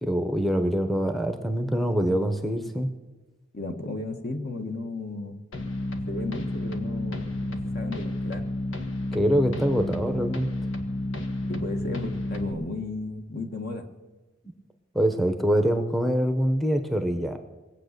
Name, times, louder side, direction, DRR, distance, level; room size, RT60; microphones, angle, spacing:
voice 1, 0.0-2.9 9.1-10.5 14.9-17.4, equal, ahead, 6 dB, 0.8 m, -24 dB
voice 2, 3.5-5.4 6.1-8.5 11.5-13.9, left 2 dB, 50° left, 5 dB, 1.5 m, -34 dB
sound 1, 5.5-12.5, left 1 dB, 85° left, 1.6 m, -31 dB
21.0 x 8.4 x 6.7 m, 1.2 s
head